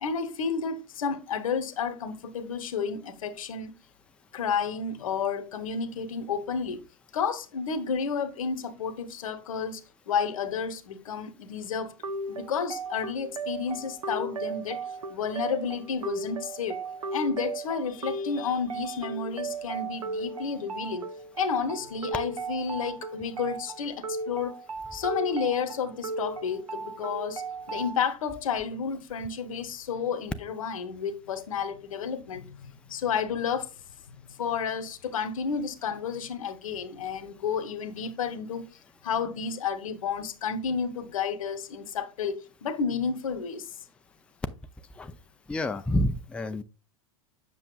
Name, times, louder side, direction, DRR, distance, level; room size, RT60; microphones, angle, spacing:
voice 1, 0.0-3.7 4.3-6.8 7.1-9.8 10.1-11.9 12.3-14.8 15.1-16.8 17.1-21.0 21.4-24.6 24.9-27.4 27.7-32.6 32.9-33.7 34.4-38.7 39.0-43.7, left 6 dB, 70° left, 0.9 m, -31 dB
sound 1, 12.0-28.0, right 3 dB, 80° right, 0.6 m, -36 dB
voice 2, 45.5-46.6, left 1 dB, 5° left, 0.4 m, -28 dB
7.7 x 6.2 x 2.3 m
figure-of-eight pair, 85°, 18 cm